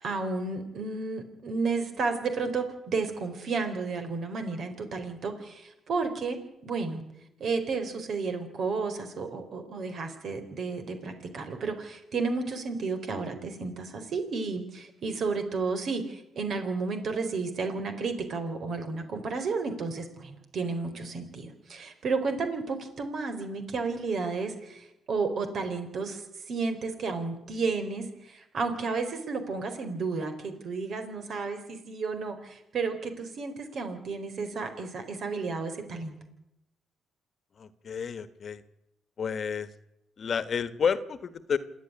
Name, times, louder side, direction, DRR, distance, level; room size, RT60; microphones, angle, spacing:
voice 1, 0.0-6.4 6.6-7.0 7.4-36.2, right 4 dB, 60° right, 7 dB, 4.1 m, -32 dB
voice 2, 37.6-38.6 39.2-39.7 40.2-41.6, left 6 dB, 50° left, 14 dB, 1.4 m, -30 dB
27.0 x 9.7 x 10.0 m, 0.86 s
cardioid pair, 90°, 0 cm